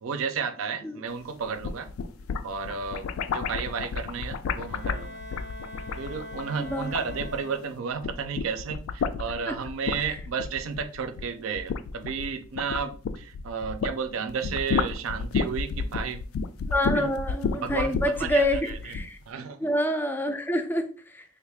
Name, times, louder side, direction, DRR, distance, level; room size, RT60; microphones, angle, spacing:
voice 1, 0.0-1.9 2.4-5.2 6.0-16.2 16.9-17.1 17.6-18.9 19.3-19.6, right 6 dB, 80° right, 9 dB, 0.4 m, -32 dB
sound 1, 1.4-7.6 7.9-14.0 14.3-19.1, left 5 dB, 85° left, 0.3 m, -31 dB
Bowed string instrument, 4.6-8.1, equal, 60° left, 0.7 m, -43 dB
voice 2, 16.7-19.2 19.6-21.2, equal, 10° left, 6 dB, 0.3 m, -27 dB
3.4 x 2.3 x 3.4 m, 0.41 s
head